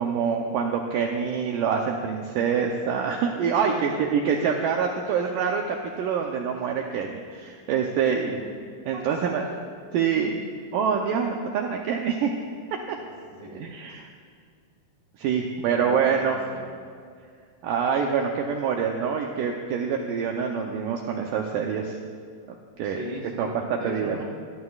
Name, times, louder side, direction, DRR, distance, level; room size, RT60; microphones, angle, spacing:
voice 1, 0.0-8.4 8.9-9.5 9.9-10.5 10.7-12.3 12.9-13.0 13.5-14.1 15.2-16.4 17.6-22.0 22.8-23.0 23.4-24.2, right 6 dB, 80° right, 1 dB, 1.9 m, -26 dB
voice 2, 3.6-4.1 8.1-8.5 8.9-9.6 13.0-13.7 15.6-16.7 22.8-24.2, equal, 15° right, -4 dB, 2.1 m, -39 dB
22.0 x 14.5 x 2.4 m, 2.2 s
omnidirectional pair, 4.7 m